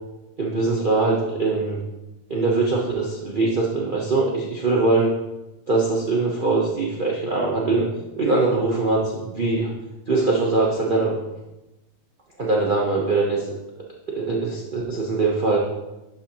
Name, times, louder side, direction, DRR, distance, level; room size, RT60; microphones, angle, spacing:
voice 1, 0.4-1.8 2.3-5.1 5.7-7.9 8.2-9.7 10.1-11.2 12.4-13.5 14.1-15.6, right 3 dB, 45° right, -2 dB, 0.6 m, -22 dB
11.5 x 5.6 x 2.9 m, 0.99 s
omnidirectional pair, 2.2 m